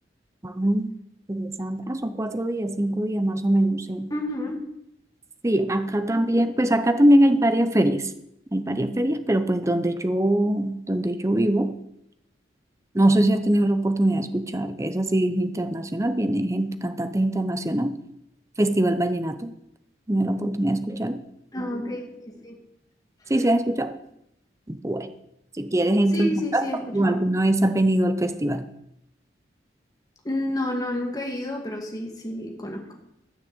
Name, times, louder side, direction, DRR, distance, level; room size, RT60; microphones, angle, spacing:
voice 1, 0.4-0.9 1.3-4.1 5.4-8.1 8.5-11.8 12.9-18.0 18.6-19.6 20.1-21.2 23.3-24.0 24.7-25.1 25.6-26.6 26.9-28.7, right 1 dB, 15° right, 10 dB, 0.7 m, -22 dB
voice 2, 4.1-4.6 21.5-22.6 26.1-27.2 30.2-32.8, left 1 dB, 20° left, 0 dB, 2.3 m, -30 dB
14.0 x 6.5 x 8.1 m, 0.81 s
head